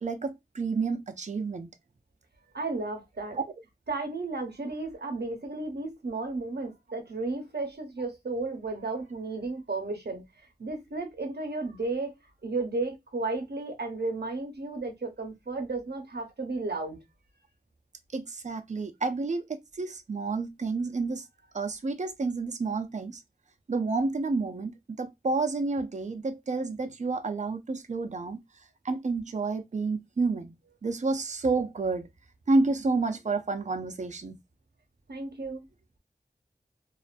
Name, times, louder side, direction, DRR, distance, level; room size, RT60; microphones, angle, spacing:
voice 1, 0.0-1.7 3.3-3.4 18.1-21.3 21.5-23.2 23.7-28.4 28.8-30.5 30.8-32.1 32.5-34.4, right 3 dB, 45° right, 0.4 m, -30 dB
voice 2, 2.5-3.4 3.9-10.2 10.6-12.1 12.4-17.0 35.1-35.6, right 3 dB, 80° right, 0.7 m, -33 dB
2.4 x 2.2 x 2.4 m
wide cardioid pair, 45°, 17 cm